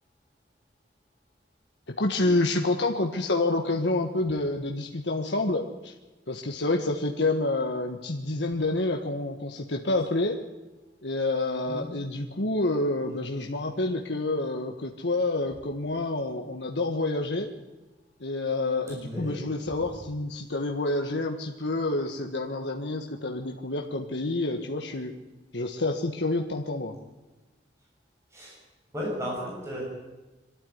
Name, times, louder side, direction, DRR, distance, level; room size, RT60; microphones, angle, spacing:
voice 1, 1.9-5.9 6.3-10.4 11.0-17.5 18.2-25.1 25.5-27.0, left 2 dB, 75° left, 2 dB, 1.5 m, -28 dB
voice 2, 18.9-19.4 19.8-19.9 28.3-28.6 28.9-29.8, equal, 15° right, -4 dB, 7.5 m, -34 dB
23.5 x 13.5 x 9.5 m, 1.1 s
head